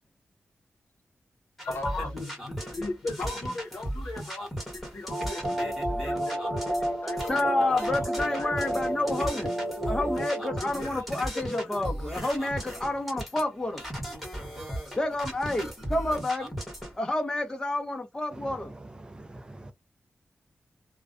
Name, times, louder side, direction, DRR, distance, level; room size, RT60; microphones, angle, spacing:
voice 1, 1.6-8.1 8.3-9.5 9.8-10.2 10.6-11.1 11.3-11.9, left 2 dB, 60° left, 0.7 m, -38 dB
sound 1, 1.6-17.0, equal, ahead, 1.2 m, -37 dB
sound 2, 5.1-10.6, right 1 dB, 40° right, 0.8 m, -31 dB
voice 2, 7.3-9.5 9.9-13.8 15.0-16.5 17.0-18.7, left 2 dB, 20° left, 0.7 m, -29 dB
voice 3, 18.3-19.7, right 2 dB, 20° right, 0.3 m, -44 dB
2.3 x 2.1 x 2.4 m
wide cardioid pair, 160°, 4 cm